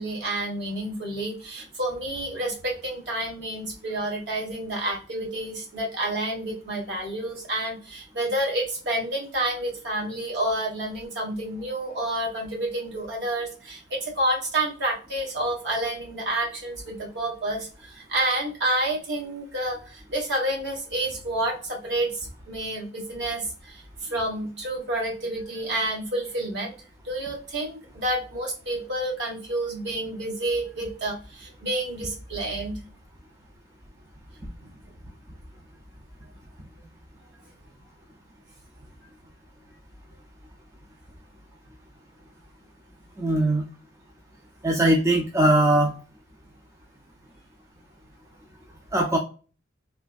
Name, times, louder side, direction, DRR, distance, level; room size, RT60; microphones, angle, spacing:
voice 1, 0.0-26.7 27.0-32.8 34.6-34.7, right 1 dB, 65° right, -2 dB, 1.3 m, -29 dB
voice 2, 43.2-43.6 44.6-46.0 48.9-49.2, right 1 dB, 15° right, 2 dB, 0.4 m, -20 dB
3.2 x 2.5 x 2.3 m, 0.36 s
head